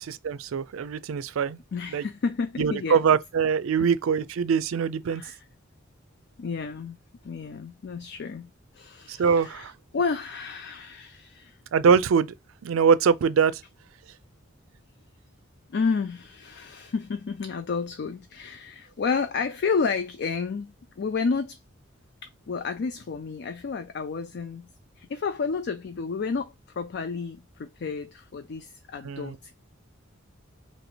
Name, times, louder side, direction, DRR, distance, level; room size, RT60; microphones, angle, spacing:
voice 1, 0.0-1.6 1.9-2.0 2.6-5.2 9.1-9.7 11.7-12.3 12.6-13.6 29.0-29.4, right 6 dB, 85° right, 0.4 m, -23 dB
voice 2, 1.7-3.0 5.1-5.4 6.4-7.0 7.2-11.6 15.7-21.6 22.2-24.7 25.0-29.5, left 5 dB, 55° left, 0.4 m, -31 dB
3.1 x 2.8 x 4.2 m
head